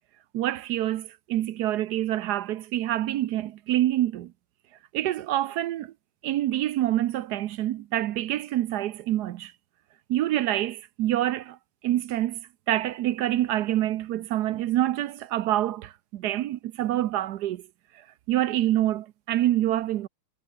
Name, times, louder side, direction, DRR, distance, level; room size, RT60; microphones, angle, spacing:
voice 1, 0.3-4.3 4.9-5.9 6.2-9.5 10.1-11.6 11.8-17.7 18.3-20.1, right 13 dB, 70° right, 1.0 m, -26 dB
omnidirectional pair, 2.3 m